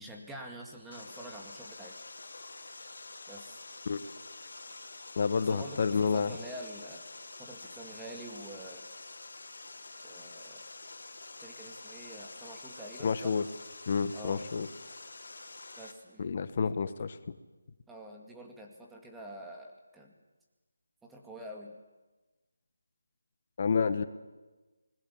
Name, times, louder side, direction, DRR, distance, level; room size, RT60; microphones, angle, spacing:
voice 1, 0.0-2.0 3.3-3.6 5.5-7.0 7.4-8.9 10.0-10.6 11.4-13.4 14.1-14.4 15.8-16.3 16.6-16.9 17.9-20.1 21.0-21.8, right 1 dB, 5° right, 0 dB, 2.1 m, -46 dB
Water, 0.9-15.9, left 3 dB, 65° left, 3.7 m, -47 dB
voice 2, 5.1-6.4 13.0-13.4 13.9-14.7 16.2-17.2 23.6-24.1, left 5 dB, 40° left, 13 dB, 1.2 m, -29 dB
27.5 x 20.5 x 7.3 m, 1.2 s
figure-of-eight pair, 165°, 0 cm